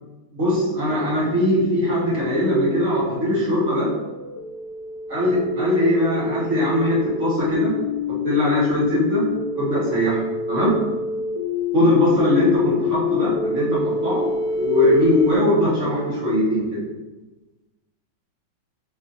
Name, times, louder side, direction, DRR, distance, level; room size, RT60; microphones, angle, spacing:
voice 1, 0.3-3.9 5.1-7.7 8.2-9.2 9.5-10.2 10.5-10.7 11.7-16.8, left 1 dB, 40° right, -7 dB, 1.6 m, -20 dB
sound 1, 2.2-15.4, left 4 dB, 55° left, 1.0 m, -28 dB
5.5 x 3.3 x 2.6 m, 1.1 s
omnidirectional pair, 2.1 m